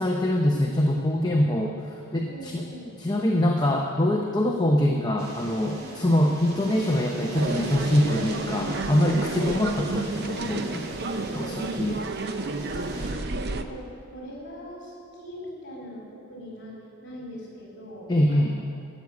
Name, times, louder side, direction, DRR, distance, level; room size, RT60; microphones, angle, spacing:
voice 1, 0.0-2.6 3.0-10.9 11.3-12.0 18.1-18.5, left 1 dB, 20° left, 1 dB, 0.8 m, -24 dB
voice 2, 2.3-3.0 5.8-6.0 8.6-8.9 10.9-11.8 12.5-16.8 17.0-18.6, equal, 55° left, -4 dB, 3.7 m, -42 dB
sound 1, 5.2-13.1, right 1 dB, 85° right, 3.0 m, -39 dB
sound 2, 7.3-13.6, right 3 dB, 50° right, 0.7 m, -31 dB
13.5 x 8.0 x 9.7 m, 2.4 s
head